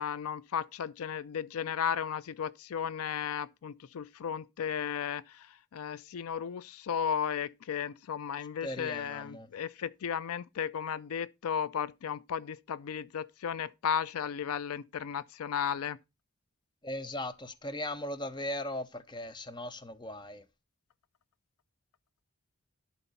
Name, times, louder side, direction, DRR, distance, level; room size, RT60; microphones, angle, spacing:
voice 1, 0.0-16.0, left 8 dB, 80° left, 0.4 m, -35 dB
voice 2, 8.6-9.5 16.8-20.4, left 1 dB, 20° left, 0.6 m, -38 dB
11.0 x 4.2 x 5.5 m
head